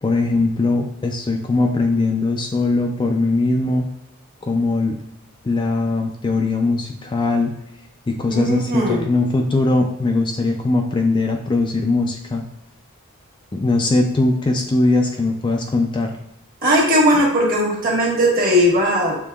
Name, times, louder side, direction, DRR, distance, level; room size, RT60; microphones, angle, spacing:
voice 1, 0.0-3.9 4.4-5.0 5.4-7.5 8.1-12.5 13.5-16.2, left 2 dB, 20° left, 3 dB, 0.3 m, -20 dB
voice 2, 8.3-9.0 16.6-19.2, equal, 45° right, -2 dB, 1.3 m, -18 dB
6.6 x 2.9 x 2.3 m, 0.83 s
head